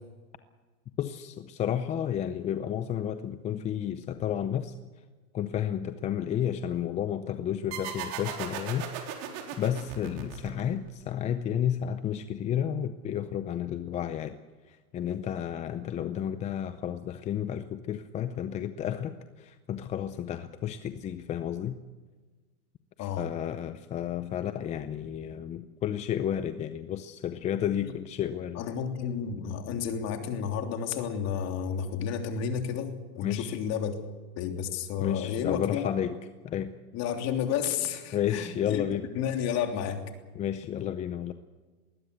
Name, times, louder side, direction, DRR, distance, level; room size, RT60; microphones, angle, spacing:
voice 1, 1.0-4.7 5.3-9.3 9.6-14.4 14.7-21.8 23.0-28.6 33.2-33.6 35.0-36.2 36.4-36.8 38.1-39.1 40.3-41.3, left 10 dB, 15° left, 11 dB, 0.6 m, -32 dB
sound 1, 7.7-11.0, right 8 dB, 45° right, 4.3 m, -38 dB
voice 2, 28.6-33.9 34.4-35.9 36.9-38.9 39.1-40.1, left 8 dB, 35° left, 4 dB, 3.2 m, -31 dB
20.0 x 19.0 x 8.2 m, 1.3 s
hypercardioid pair, 135°, 45 cm